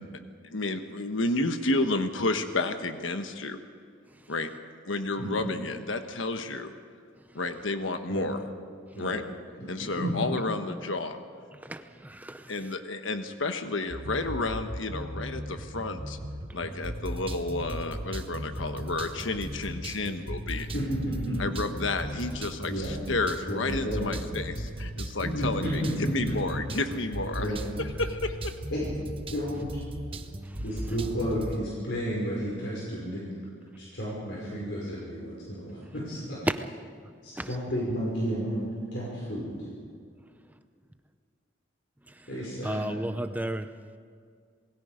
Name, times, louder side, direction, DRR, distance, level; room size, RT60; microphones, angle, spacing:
voice 1, 0.5-3.6 4.3-4.5 4.9-6.7 7.3-8.4 9.0-9.2 9.7-11.2 12.5-16.2 16.5-20.7 21.4-27.5 27.8-28.5, left 2 dB, 85° left, 7 dB, 1.3 m, -31 dB
voice 2, 11.5-12.8 16.5-16.8 19.9-20.0 30.4-30.6 37.4-37.6 42.1-42.3 42.6-43.7, right 1 dB, 10° right, 9 dB, 0.6 m, -36 dB
Acid Jazz Loop - Music Bed, 13.9-31.6, right 1 dB, 30° right, 1.1 m, -37 dB
voice 3, 20.7-21.4 22.7-22.9 23.5-24.3 25.3-26.6 27.4-27.6 28.7-28.9 29.3-29.7 30.6-33.2 33.8-36.4 37.2-38.6 38.9-39.7 42.3-42.9, equal, 65° left, -5 dB, 5.6 m, -32 dB
27.0 x 21.0 x 5.1 m, 2.1 s
head